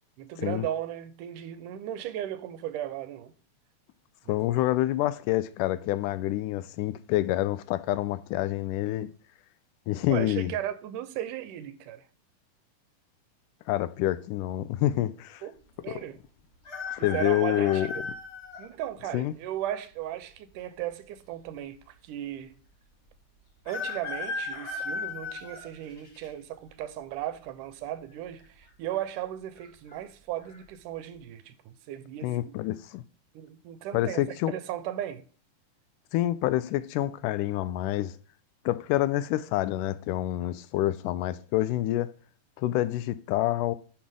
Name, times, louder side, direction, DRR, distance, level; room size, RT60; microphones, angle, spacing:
voice 1, 0.2-3.3 4.3-4.4 10.1-12.1 15.4-15.5 15.8-16.2 17.0-18.0 18.6-22.6 23.7-32.5 33.3-35.2, right 12 dB, 80° right, 2.2 m, -36 dB
voice 2, 4.3-9.1 9.9-10.5 13.7-15.4 17.0-17.9 19.1-19.3 32.2-33.0 33.9-34.5 36.1-38.1 38.7-42.1 42.6-43.8, left 14 dB, 85° left, 2.1 m, -27 dB
sound 1, 16.6-18.7 19.3-19.4 20.5-21.2 21.5-21.6 21.7-21.8 23.7-26.3 26.8-27.2 28.3-28.7 28.9-29.0 29.6-30.0 30.4-30.6, left 4 dB, 30° left, 1.5 m, -36 dB
10.0 x 6.0 x 3.6 m
omnidirectional pair, 3.7 m